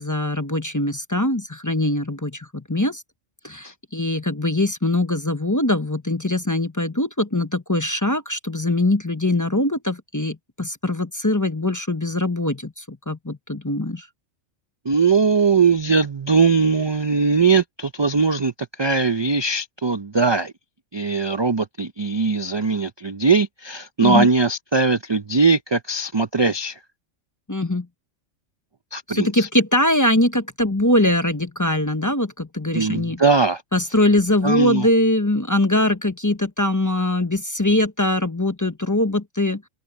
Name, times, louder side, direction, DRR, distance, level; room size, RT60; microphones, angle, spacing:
voice 1, 0.0-3.0 3.4-14.1 24.0-24.3 27.5-27.9 29.1-33.2 33.7-39.6, left 1 dB, 15° left, 0.8 m, -22 dB
voice 2, 14.8-20.5 20.9-26.8 28.9-29.5 32.7-33.6 34.4-34.9, right 4 dB, 35° right, 0.5 m, -20 dB
open air
omnidirectional pair, 1.3 m